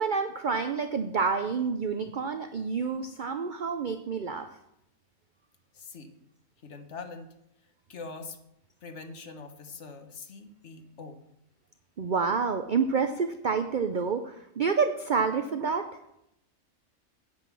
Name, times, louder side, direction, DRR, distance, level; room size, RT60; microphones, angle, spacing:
voice 1, 0.0-4.5 12.0-15.9, right 5 dB, 60° right, 8 dB, 0.5 m, -28 dB
voice 2, 5.7-6.1 6.6-7.3 7.9-8.4 8.8-11.2, left 4 dB, 55° left, 7 dB, 1.3 m, -43 dB
8.8 x 8.0 x 5.9 m, 0.82 s
omnidirectional pair, 1.5 m